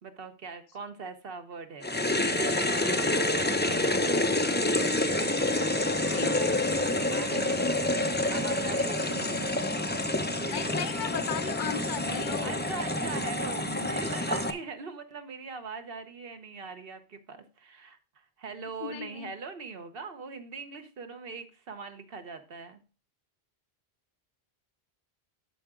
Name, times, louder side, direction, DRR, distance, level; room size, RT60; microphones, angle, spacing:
voice 1, 0.0-4.3 7.1-7.7 8.3-9.5 12.4-22.8, right 4 dB, 65° right, 8 dB, 1.2 m, -41 dB
sound 1, 1.8-14.5, left 1 dB, 15° left, 0.5 m, -28 dB
voice 2, 6.1-6.7 10.5-12.6 18.8-19.3, left 9 dB, 55° left, 13 dB, 0.8 m, -36 dB
12.0 x 4.9 x 3.7 m, 0.35 s
omnidirectional pair, 1.1 m